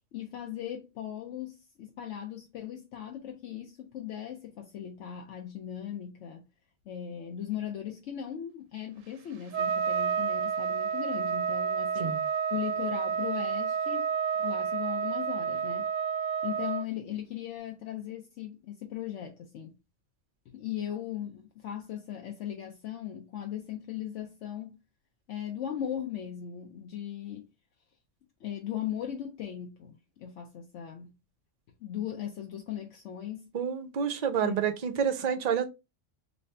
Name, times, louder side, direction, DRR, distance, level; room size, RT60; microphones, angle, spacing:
voice 1, 0.1-6.5 6.9-12.2 12.5-15.9 16.4-19.8 20.5-24.8 25.3-27.5 28.4-31.2 31.8-33.5 34.4-34.6, left 10 dB, 70° left, 0.9 m, -38 dB
Trumpet, 9.5-16.8, right 7 dB, 90° right, 1.0 m, -30 dB
voice 2, 33.5-35.6, right 7 dB, 55° right, 0.5 m, -28 dB
3.1 x 2.7 x 3.2 m
omnidirectional pair, 1.3 m